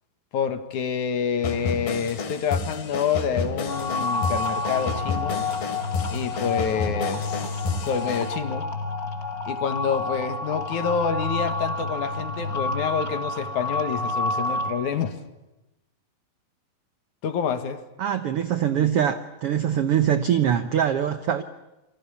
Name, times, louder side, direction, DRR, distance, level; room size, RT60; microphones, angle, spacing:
voice 1, 0.3-5.5 6.1-8.7 9.5-15.2 17.2-17.8, left 7 dB, 65° left, 2.9 m, -27 dB
sound 1, 1.4-8.3, left 4 dB, 85° left, 4.3 m, -31 dB
sound 2, 3.7-14.7, left 2 dB, 30° left, 2.5 m, -29 dB
voice 2, 18.0-21.4, right 9 dB, 70° right, 1.4 m, -23 dB
28.5 x 24.5 x 7.1 m
omnidirectional pair, 4.0 m